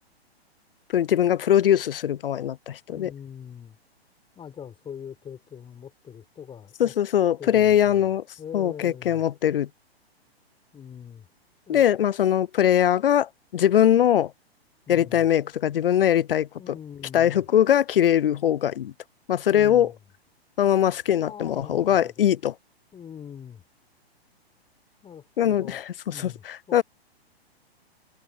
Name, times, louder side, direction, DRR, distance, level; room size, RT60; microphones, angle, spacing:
voice 1, 0.9-3.1 6.8-8.2 8.5-9.7 11.7-14.3 14.9-16.5 17.1-18.9 19.3-19.9 20.6-22.5 25.4-26.8, left 10 dB, 60° left, 0.5 m, -21 dB
voice 2, 2.9-3.8 4.4-6.9 7.4-8.1 8.4-9.2 10.7-11.3 11.7-11.9 14.9-15.3 16.6-17.5 19.5-20.0 21.2-22.3 22.9-23.6 25.0-25.8 26.1-26.8, left 8 dB, 15° left, 5.7 m, -42 dB
figure-of-eight pair, 115°, 32 cm